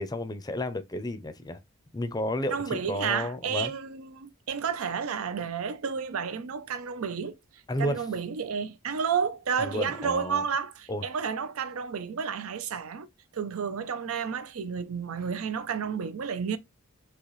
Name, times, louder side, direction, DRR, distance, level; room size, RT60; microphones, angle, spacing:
voice 1, 0.0-1.6 1.9-3.7 7.7-8.0 9.6-10.4 10.9-11.1, left 1 dB, 20° left, 0.5 m, -32 dB
voice 2, 2.5-7.4 7.8-16.6, right 6 dB, 85° right, 0.5 m, -31 dB
4.0 x 2.9 x 3.1 m
head